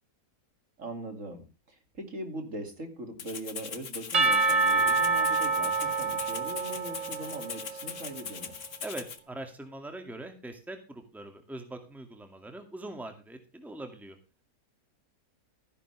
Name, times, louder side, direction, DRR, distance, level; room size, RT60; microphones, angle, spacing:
voice 1, 0.8-8.5, right 1 dB, 50° right, 6 dB, 2.9 m, -41 dB
Rattle (instrument), 3.2-9.2, left 6 dB, 50° left, 1.5 m, -41 dB
Percussion / Church bell, 4.1-8.0, right 3 dB, 35° right, 0.6 m, -27 dB
voice 2, 8.8-14.2, right 1 dB, ahead, 6 dB, 2.1 m, -42 dB
14.5 x 10.5 x 3.4 m, 0.32 s
omnidirectional pair, 1.7 m